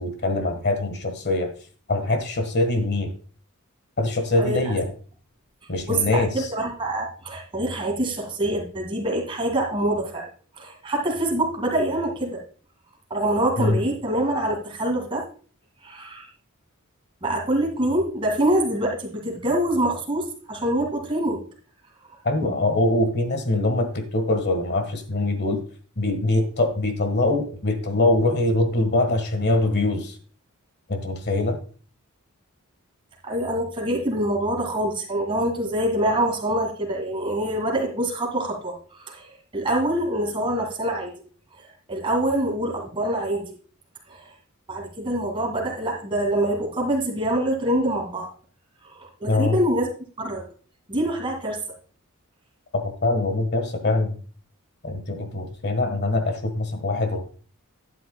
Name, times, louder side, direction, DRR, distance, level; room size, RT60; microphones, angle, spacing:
voice 1, 0.0-1.5 1.9-3.1 4.0-4.9 5.7-6.5 13.6-13.8 22.2-25.6 26.0-30.2 30.9-31.6 49.3-49.6 52.8-54.2 54.8-57.2, left 2 dB, 50° left, 7 dB, 1.5 m, -23 dB
voice 2, 4.4-4.7 5.9-10.3 10.6-12.4 13.1-15.3 15.8-16.3 17.2-21.4 33.2-38.8 39.0-41.1 41.9-43.6 44.1-44.3 44.7-48.3 48.8-49.9 50.2-50.5 50.9-51.6, right 1 dB, 25° right, 1 dB, 2.2 m, -25 dB
11.5 x 9.3 x 2.2 m, 0.41 s
head